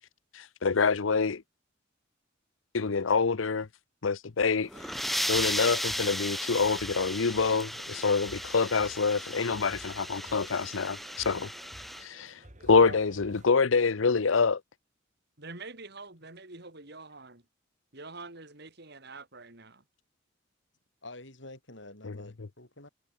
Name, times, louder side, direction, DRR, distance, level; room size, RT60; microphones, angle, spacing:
voice 1, 0.3-1.4 2.7-3.7 4.0-5.0 5.3-11.0 11.2-11.5 12.0-14.6 22.0-22.1, left 5 dB, 90° left, 0.8 m, -26 dB
sound 1, 4.6-12.1, equal, ahead, 2.0 m, -35 dB
sound 2, 4.7-13.5, right 1 dB, 40° right, 4.1 m, -53 dB
voice 2, 12.7-13.0 15.4-17.4 17.9-19.8, right 3 dB, 55° right, 4.3 m, -45 dB
voice 3, 21.0-22.9, left 2 dB, 65° left, 7.8 m, -48 dB
head